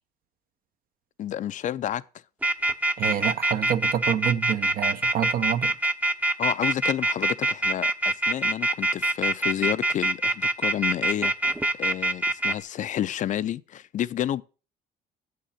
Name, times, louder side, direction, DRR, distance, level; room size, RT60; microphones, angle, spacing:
voice 1, 1.2-2.0 6.4-11.3 11.8-14.4, left 11 dB, 50° left, 0.4 m, -30 dB
sound 1, 2.4-12.5, right 1 dB, 10° right, 0.6 m, -24 dB
voice 2, 3.0-5.7, right 9 dB, 60° right, 0.7 m, -27 dB
7.7 x 6.5 x 5.5 m
cardioid pair, 110°, 17 cm